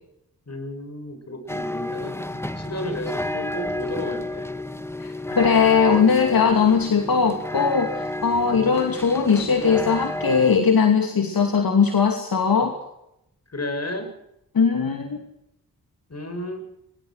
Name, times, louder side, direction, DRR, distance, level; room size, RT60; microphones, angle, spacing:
voice 1, 0.5-2.2 2.5-4.5 6.9-7.1 8.5-8.9 13.5-14.1 16.1-16.6, left 1 dB, 45° left, 8 dB, 7.5 m, -33 dB
sound 1, 1.5-10.6, left 1 dB, 5° left, 1.9 m, -31 dB
voice 2, 5.0-12.7 14.5-15.2, left 6 dB, 65° left, 4 dB, 2.7 m, -19 dB
24.0 x 21.5 x 6.4 m, 0.84 s
cardioid pair, 45°, 37 cm